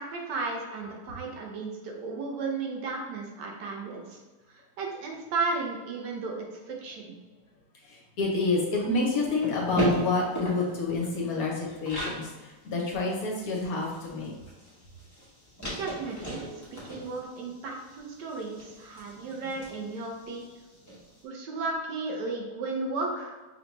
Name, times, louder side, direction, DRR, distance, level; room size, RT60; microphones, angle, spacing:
voice 1, 0.0-4.2 4.5-7.1 15.8-20.4 21.2-23.4, right 3 dB, 85° right, 0 dB, 1.4 m, -34 dB
voice 2, 7.8-14.3 19.4-19.5, left 3 dB, 65° left, -1 dB, 1.1 m, -29 dB
sound 1, 9.2-12.2 12.6-12.7 13.0-21.0, equal, 15° left, 0.7 m, -35 dB
5.3 x 2.2 x 3.0 m, 1.2 s
omnidirectional pair, 1.8 m